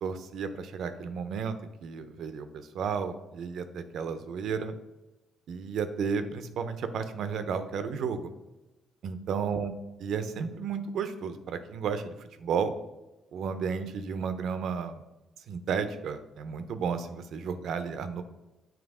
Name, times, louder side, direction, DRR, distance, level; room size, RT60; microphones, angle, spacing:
voice 1, 0.0-4.7 5.5-8.3 9.0-9.7 10.0-12.7 13.3-15.0 15.5-18.2, right 6 dB, 70° right, 9 dB, 0.6 m, -33 dB
7.3 x 3.1 x 4.8 m, 1.0 s
cardioid pair, 90°, 0 cm